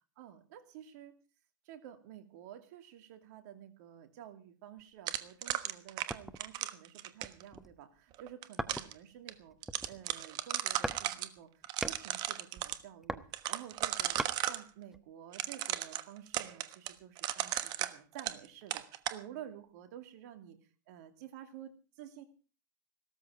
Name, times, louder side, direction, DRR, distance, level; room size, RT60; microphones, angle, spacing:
voice 1, 0.2-1.1 1.6-9.6 9.9-14.2 14.4-20.6 20.9-22.2, right 10 dB, 60° right, 8 dB, 2.6 m, -51 dB
sound 1, 5.1-7.4 8.2-8.9 9.3-9.4 9.6-11.3 11.6-12.8 13.3-14.6 15.3-18.5 18.7-19.2, right 14 dB, 45° right, 1.3 m, -35 dB
sound 2, 6.1-6.5 7.1-7.8 8.6-9.1 9.5-10.2 10.8-11.1 11.4-12.1 12.8-14.4 14.9-15.0, right 1 dB, 5° right, 1.0 m, -40 dB
17.0 x 13.5 x 5.0 m, 0.36 s
hypercardioid pair, 105°, 10 cm